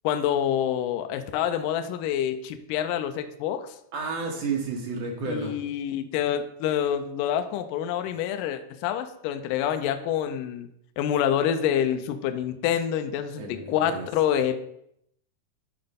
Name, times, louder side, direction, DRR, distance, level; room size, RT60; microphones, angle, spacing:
voice 1, 0.0-3.7 5.2-10.7 11.0-14.5, left 9 dB, 80° left, 8 dB, 2.0 m, -27 dB
voice 2, 3.9-5.5 13.3-14.1, right 4 dB, 65° right, 1 dB, 1.7 m, -31 dB
11.0 x 3.9 x 5.3 m, 0.75 s
omnidirectional pair, 4.3 m